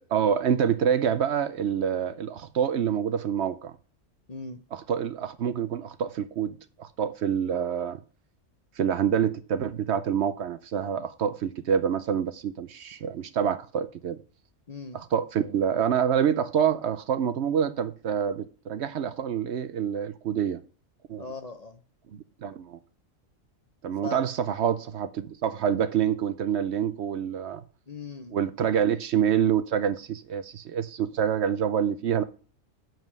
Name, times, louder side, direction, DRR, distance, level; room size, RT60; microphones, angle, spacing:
voice 1, 0.1-3.8 4.7-6.5 6.8-8.0 8.8-14.2 14.9-20.6 21.1-21.2 22.1-22.8 23.8-27.6 28.3-32.2, right 8 dB, 65° right, 0.9 m, -27 dB
voice 2, 4.3-4.6 14.7-15.0 21.2-21.8 24.0-24.2 27.9-28.4, left 3 dB, 35° left, 0.8 m, -38 dB
7.5 x 5.3 x 6.1 m
omnidirectional pair, 1.3 m